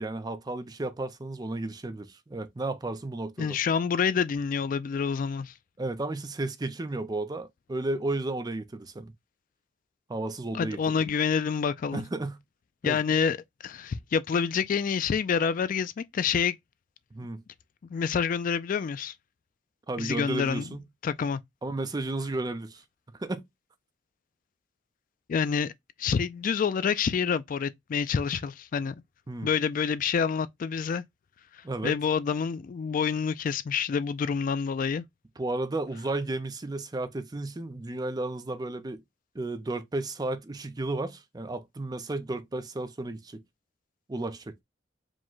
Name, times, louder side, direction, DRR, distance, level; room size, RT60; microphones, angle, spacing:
voice 1, 0.0-3.6 5.8-9.1 10.1-11.0 11.9-12.4 12.8-13.0 17.1-17.4 19.9-20.8 21.6-22.8 23.2-23.4 29.3-29.5 31.6-32.0 35.4-39.0 39.3-43.4 44.1-44.6, right 2 dB, 20° right, 0.5 m, -33 dB
voice 2, 3.4-5.5 10.5-12.0 12.8-13.4 13.6-16.5 17.9-19.1 20.0-20.6 21.0-21.4 25.3-25.7 26.0-28.9 29.4-31.0 31.8-35.0, left 6 dB, 45° left, 0.3 m, -27 dB
5.0 x 2.1 x 3.7 m
head